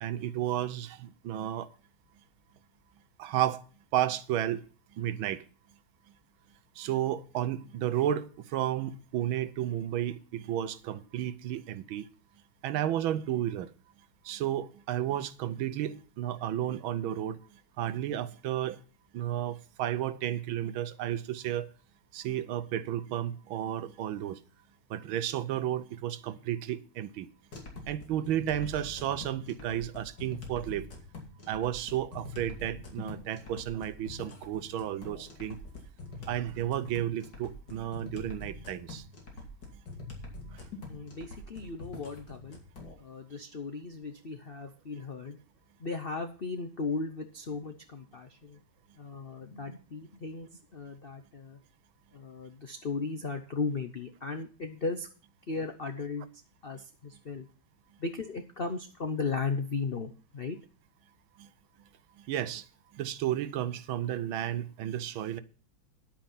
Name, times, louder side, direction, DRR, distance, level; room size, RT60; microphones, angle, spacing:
voice 1, 0.0-1.7 3.2-3.6 3.9-4.6 5.0-5.4 6.8-12.1 12.6-13.7 14.2-17.4 17.8-18.8 19.1-21.7 22.1-24.4 24.9-27.3 27.8-30.9 31.5-35.6 36.3-39.0 40.5-40.6 61.4-61.5 62.2-62.6 62.9-65.4, right 11 dB, 75° right, 1.5 m, -32 dB
sound 1, 27.5-42.9, left 2 dB, 55° left, 3.1 m, -45 dB
voice 2, 40.9-42.6 43.0-45.4 45.8-48.6 49.0-51.6 52.1-55.1 55.5-57.5 58.0-60.6, left 4 dB, 80° left, 0.5 m, -36 dB
10.5 x 8.7 x 5.7 m
omnidirectional pair, 2.3 m